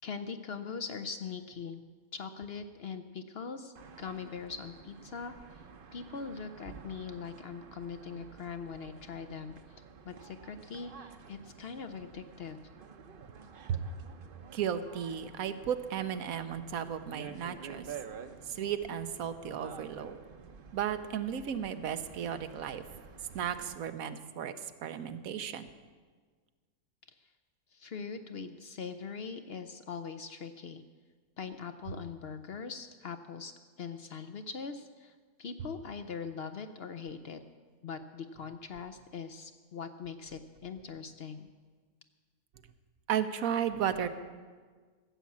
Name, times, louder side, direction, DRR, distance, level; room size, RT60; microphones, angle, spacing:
voice 1, 0.0-1.8 2.1-5.3 5.9-9.6 10.1-12.6 27.7-30.8 31.4-33.5 33.8-35.1 35.4-37.4 37.8-41.5, left 5 dB, 60° left, 9 dB, 0.7 m, -41 dB
sound 1, 3.7-23.7, right 6 dB, 45° right, 0.8 m, -50 dB
voice 2, 14.5-17.9 18.5-20.2 20.7-22.8 23.3-24.5 24.8-25.7 43.1-44.1, right 9 dB, 80° right, 10 dB, 1.2 m, -34 dB
14.5 x 7.3 x 8.5 m, 1.5 s
omnidirectional pair, 1.5 m